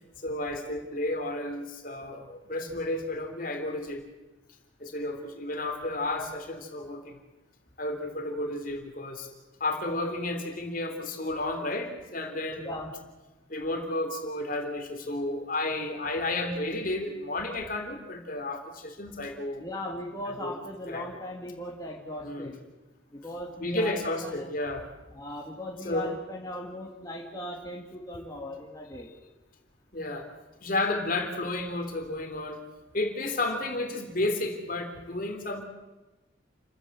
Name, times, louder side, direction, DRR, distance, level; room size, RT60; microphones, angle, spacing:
voice 1, 0.2-4.0 4.8-7.2 7.8-9.3 9.6-12.7 13.5-19.6 20.4-20.5 20.9-21.1 22.2-22.5 23.5-24.9 25.8-26.1 29.9-30.3 30.6-32.6 32.9-35.6, left 2 dB, 45° left, 5 dB, 3.4 m, -32 dB
voice 2, 19.6-22.6 23.1-24.4 25.1-29.1, left 1 dB, 20° left, -2 dB, 2.7 m, -38 dB
29.5 x 15.5 x 8.0 m, 1.1 s
head